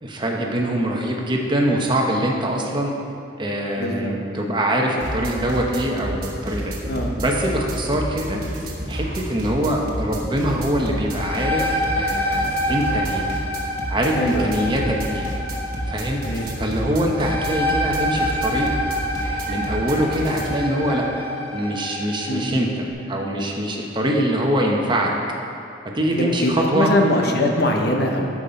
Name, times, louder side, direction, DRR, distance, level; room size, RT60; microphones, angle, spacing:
voice 1, 0.0-2.9 3.4-6.8 7.2-8.4 8.9-13.2 13.9-15.3 15.9-16.2 16.6-18.7 19.5-21.3 21.5-25.1 25.9-26.9, right 1 dB, 25° right, 0 dB, 1.0 m, -23 dB
voice 2, 3.8-4.1 6.9-7.1 14.2-14.5 16.2-16.5 22.3-22.6 26.2-28.3, left 1 dB, 55° left, 1 dB, 1.0 m, -22 dB
sound 1, 5.0-20.6, right 1 dB, 45° right, 1.4 m, -30 dB
sound 2, 10.9-22.4, equal, 15° left, 2.4 m, -27 dB
11.0 x 7.3 x 5.2 m, 2.6 s
head